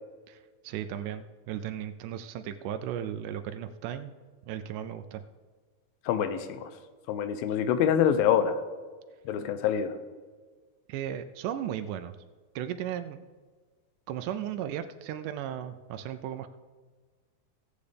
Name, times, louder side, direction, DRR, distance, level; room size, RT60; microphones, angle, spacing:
voice 1, 0.3-4.1 4.5-5.2 10.9-12.2 12.5-13.2 14.1-16.5, right 10 dB, 90° right, 9 dB, 1.8 m, -36 dB
voice 2, 6.1-6.7 7.1-8.6 9.3-10.0, left 9 dB, 80° left, 10 dB, 2.5 m, -25 dB
17.5 x 8.3 x 3.4 m, 1.4 s
omnidirectional pair, 4.2 m